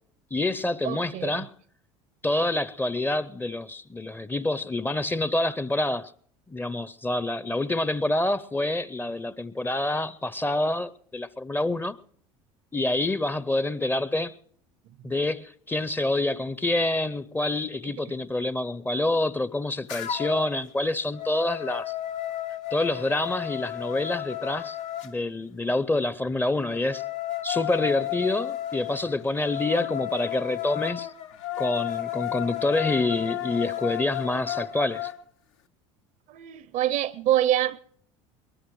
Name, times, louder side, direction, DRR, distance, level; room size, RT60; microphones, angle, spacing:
voice 1, 0.3-1.5 2.2-6.1 6.5-12.0 12.7-14.3 15.0-21.9 22.7-24.8 25.0-27.0 27.4-31.1 31.6-35.1, left 2 dB, 10° left, 0.6 m, -27 dB
voice 2, 0.8-1.4 36.3-37.8, right 12 dB, 50° right, 0.6 m, -25 dB
sound 1, 19.9-20.5 20.9-25.1 26.6-35.2, left 13 dB, 75° left, 0.8 m, -33 dB
22.5 x 20.0 x 3.1 m
hypercardioid pair, 75°, 17 cm